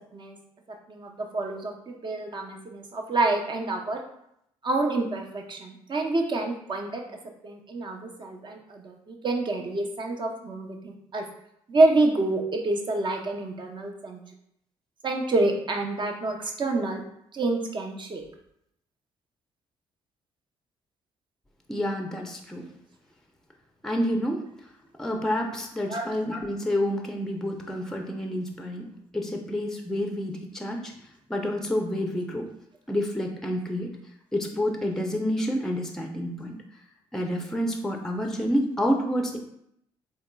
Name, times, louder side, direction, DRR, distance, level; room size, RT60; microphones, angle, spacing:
voice 1, 0.9-4.0 4.6-7.0 7.4-11.2 11.7-14.2 15.0-17.0 17.3-18.2 25.9-26.0, right 2 dB, 40° right, 2 dB, 0.7 m, -27 dB
voice 2, 21.7-22.7 23.8-24.4 25.0-28.9 29.1-30.9 31.3-32.5 32.9-33.9 34.3-36.5 37.1-39.4, equal, 5° left, 2 dB, 0.5 m, -28 dB
3.6 x 3.0 x 2.2 m, 0.76 s
hypercardioid pair, 55°, 12 cm